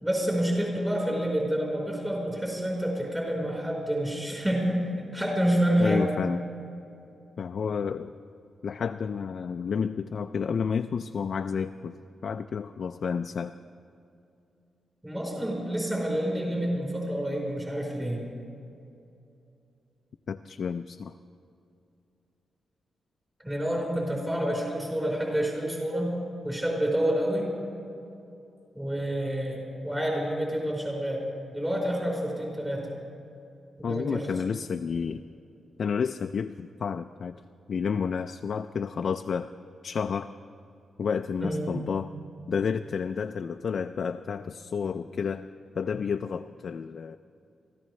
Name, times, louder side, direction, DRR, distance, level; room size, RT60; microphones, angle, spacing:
voice 1, 0.0-6.1 15.0-18.3 23.4-26.2 26.4-27.5 28.7-31.2 31.5-32.9 33.8-34.3 41.4-41.8, right 1 dB, 15° right, -3 dB, 4.2 m, -28 dB
voice 2, 5.8-6.4 7.4-8.1 8.6-12.0 12.2-13.6 20.3-21.1 33.8-35.2 35.8-37.4 37.7-39.5 39.8-40.3 41.0-42.1 42.5-45.5 45.7-47.2, left 6 dB, 60° left, 7 dB, 0.4 m, -30 dB
23.5 x 14.0 x 3.2 m, 2.7 s
cardioid pair, 90°, 0 cm